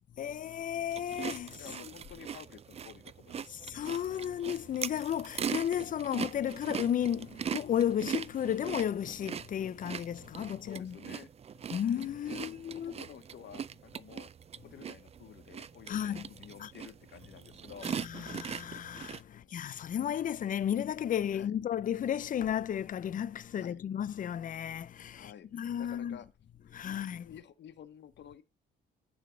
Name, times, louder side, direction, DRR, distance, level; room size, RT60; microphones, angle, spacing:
voice 1, 0.2-1.7 3.5-11.0 11.7-12.9 15.9-16.3 16.6-16.7 17.8-26.2 26.7-27.3, left 9 dB, 45° left, 0.4 m, -33 dB
sound 1, 0.9-19.2, right 7 dB, 30° right, 0.4 m, -41 dB
voice 2, 1.6-3.6 5.5-5.7 10.3-11.3 12.3-14.3 14.6-17.9 19.3-19.6 21.3-21.5 23.5-23.8 25.1-26.3 26.6-27.0 27.2-28.4, left 9 dB, 65° left, 0.9 m, -51 dB
9.2 x 3.4 x 6.1 m
cardioid pair, 90°, 20 cm